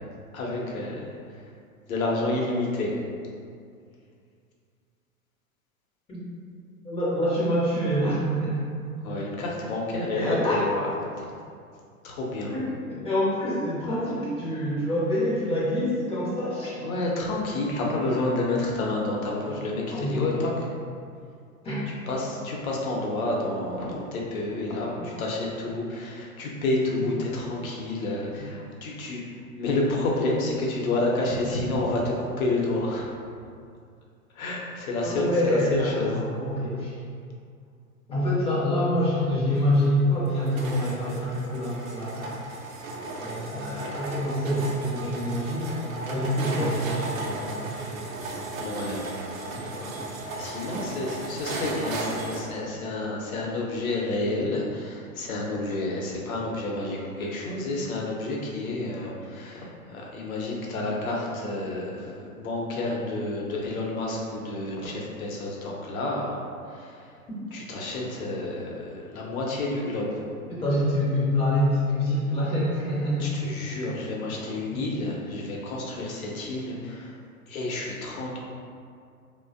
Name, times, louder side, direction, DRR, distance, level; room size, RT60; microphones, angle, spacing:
voice 1, 0.3-1.1 1.9-2.9 9.0-10.8 11.2-11.3 12.0-12.5 16.8-20.5 22.1-29.2 29.5-33.1 34.4-36.1 48.6-49.0 49.7-49.8 50.3-66.4 66.7-66.9 67.5-70.1 73.2-77.1 77.5-78.4, left 2 dB, 70° left, -2 dB, 0.7 m, -29 dB
voice 2, 6.8-8.6 10.1-10.6 12.5-16.8 19.9-20.4 21.6-21.8 25.0-25.1 35.0-37.0 38.1-42.4 43.2-45.7 46.1-47.9 49.5-50.2 70.5-73.3 74.7-74.8, left 1 dB, 15° left, -8 dB, 0.5 m, -26 dB
sound 1, 39.6-52.4, right 2 dB, 60° right, 0.6 m, -35 dB
3.2 x 2.1 x 2.5 m, 2.3 s
figure-of-eight pair, 100°, 44 cm